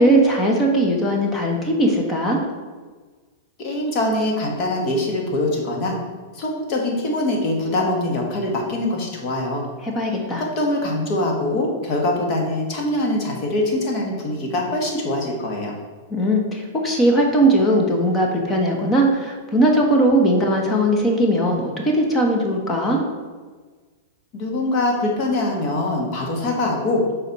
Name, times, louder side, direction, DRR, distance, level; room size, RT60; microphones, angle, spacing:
voice 1, 0.0-2.4 9.8-10.4 16.1-23.0, right 1 dB, 20° left, 1 dB, 1.1 m, -19 dB
voice 2, 3.6-5.9 6.3-9.6 10.4-15.7 24.3-27.1, left 1 dB, 40° left, 0 dB, 1.6 m, -23 dB
6.2 x 4.2 x 4.1 m, 1.4 s
hypercardioid pair, 135°, 0 cm